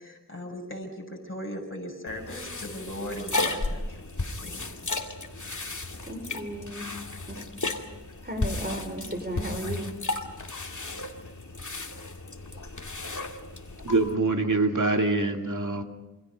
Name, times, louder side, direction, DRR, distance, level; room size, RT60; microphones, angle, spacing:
voice 1, 0.0-4.0 4.4-4.7, equal, 40° left, 0 dB, 6.8 m, -38 dB
sound 1, 2.1-14.1, left 2 dB, 60° left, 2.3 m, -34 dB
voice 2, 6.0-6.9 7.3-7.4 8.2-9.9 12.5-12.6, right 1 dB, 30° right, 6 dB, 4.1 m, -35 dB
voice 3, 13.8-15.8, right 3 dB, 65° right, 3 dB, 2.5 m, -24 dB
28.0 x 24.5 x 5.2 m, 1.1 s
wide cardioid pair, 45°, 33 cm